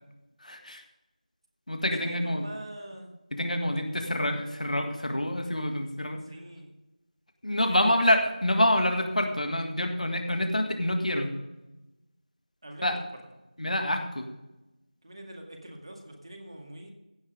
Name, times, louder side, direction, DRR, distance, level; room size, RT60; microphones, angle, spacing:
voice 1, 0.4-0.8 1.7-2.4 3.3-6.2 7.4-11.3 12.8-13.0 13.6-14.3, left 1 dB, 60° left, 5 dB, 1.7 m, -27 dB
voice 2, 2.0-3.1 6.2-6.7 7.6-8.2 12.6-13.0 15.0-16.9, right 1 dB, 40° right, 2 dB, 2.0 m, -44 dB
15.5 x 6.1 x 5.0 m, 1.0 s
figure-of-eight pair, 170°, 4 cm